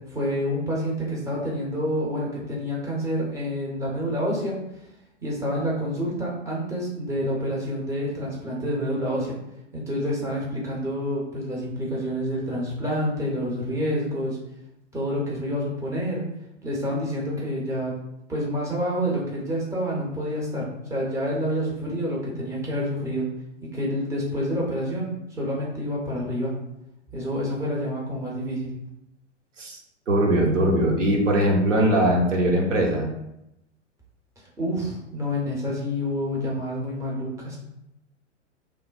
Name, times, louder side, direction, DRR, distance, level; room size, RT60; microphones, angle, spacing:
voice 1, 0.1-4.6 5.2-9.4 9.7-14.4 14.9-16.2 16.6-17.9 18.3-23.3 23.7-25.1 25.4-26.5 27.1-28.7 34.6-37.6, equal, 10° right, -5 dB, 0.5 m, -28 dB
voice 2, 30.1-33.1, right 1 dB, 80° right, 0 dB, 0.8 m, -21 dB
3.1 x 2.1 x 2.3 m, 0.85 s
figure-of-eight pair, 105°, 37 cm